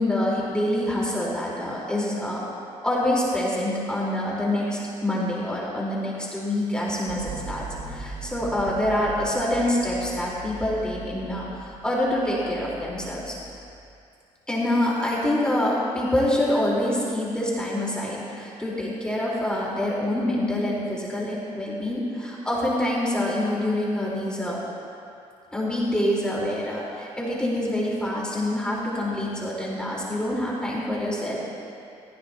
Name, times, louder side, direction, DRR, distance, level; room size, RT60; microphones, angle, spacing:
voice 1, 0.0-2.5 2.8-7.6 7.9-13.3 14.5-24.6 25.5-31.4, left 1 dB, 5° left, -6 dB, 4.3 m, -26 dB
sound 1, 7.1-13.9, right 3 dB, 80° right, 2.3 m, -40 dB
20.0 x 15.5 x 3.0 m, 2.5 s
cardioid pair, 90°, 13 cm